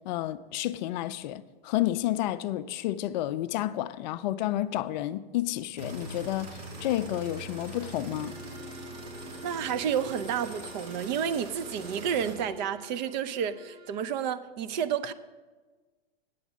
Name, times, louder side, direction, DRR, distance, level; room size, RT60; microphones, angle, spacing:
voice 1, 0.1-8.4, left 14 dB, 45° left, 0.4 m, -30 dB
sound 1, 5.8-12.3, right 2 dB, 60° right, 3.1 m, -42 dB
Bowed string instrument, 8.0-14.2, left 4 dB, 85° right, 2.4 m, -50 dB
voice 2, 9.4-15.1, right 8 dB, 45° right, 0.6 m, -30 dB
9.2 x 7.0 x 7.3 m
hypercardioid pair, 120°, 31 cm